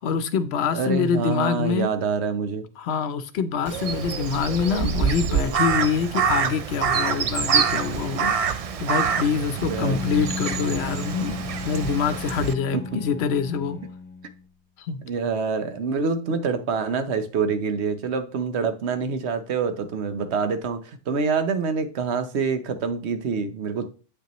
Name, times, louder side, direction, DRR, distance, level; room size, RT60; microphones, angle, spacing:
voice 1, 0.0-1.9 2.8-13.8 14.8-15.0, left 6 dB, 70° left, 11 dB, 0.9 m, -25 dB
voice 2, 0.7-2.7 9.7-10.0 12.7-12.8 15.0-23.9, right 5 dB, 75° right, 9 dB, 1.1 m, -26 dB
Crow, 3.7-12.5, right 6 dB, 55° right, 0.4 m, -26 dB
Bowed string instrument, 9.6-14.5, left 4 dB, 15° left, 0.4 m, -35 dB
8.3 x 5.5 x 3.0 m, 0.37 s
omnidirectional pair, 1.1 m